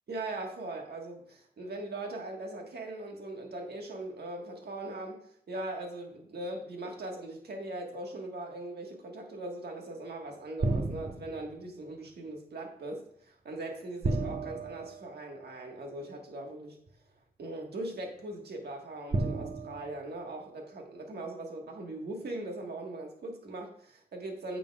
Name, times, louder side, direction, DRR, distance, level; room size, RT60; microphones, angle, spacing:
voice 1, 0.1-5.2 5.5-16.8 17.4-24.6, right 2 dB, 90° right, 2 dB, 1.5 m, -40 dB
sound 1, 10.6-11.6 14.0-15.7 16.9-17.0 19.1-20.8, right 3 dB, 60° right, 1.1 m, -34 dB
9.4 x 6.9 x 2.4 m, 0.66 s
wide cardioid pair, 85°, 16 cm